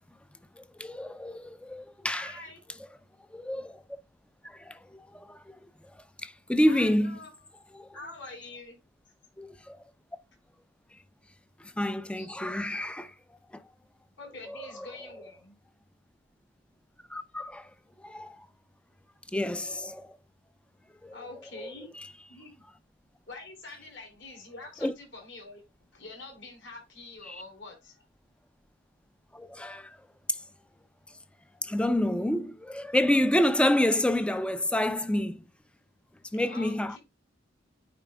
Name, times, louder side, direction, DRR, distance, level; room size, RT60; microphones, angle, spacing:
voice 1, 0.6-2.3 3.3-3.8 4.4-5.4 6.2-7.2 7.7-7.9 9.4-9.8 11.8-13.1 14.5-14.9 17.1-17.7 18.0-18.5 19.3-20.2 21.0-21.2 21.6-21.7 24.8-24.9 27.3-27.4 29.3-29.9 30.3-30.4 31.6-35.4 36.3-37.0, left 1 dB, 5° left, 0.4 m, -28 dB
voice 2, 2.1-2.6 6.6-7.3 7.9-8.8 12.2-12.3 14.2-15.6 21.1-21.9 22.3-22.6 23.3-25.6 25.9-28.0 36.5-37.0, left 2 dB, 65° left, 4.5 m, -45 dB
8.9 x 4.9 x 2.2 m
head